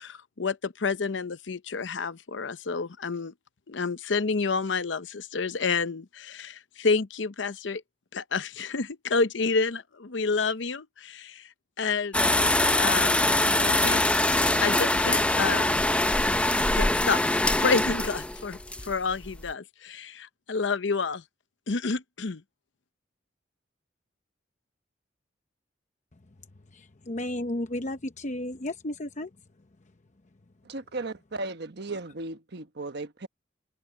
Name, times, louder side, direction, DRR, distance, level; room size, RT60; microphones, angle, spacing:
voice 1, 0.0-3.3 3.7-7.8 8.1-11.4 11.8-12.5 12.8-13.3 13.6-14.0 14.6-15.9 16.7-18.6 18.9-21.2 21.7-22.4, left 4 dB, 70° left, 0.8 m, -29 dB
sound 1, 12.1-19.5, left 1 dB, 5° left, 0.7 m, -23 dB
voice 2, 26.7-29.3, left 1 dB, 40° left, 0.9 m, -33 dB
voice 3, 30.6-33.3, right 2 dB, 60° right, 1.3 m, -36 dB
head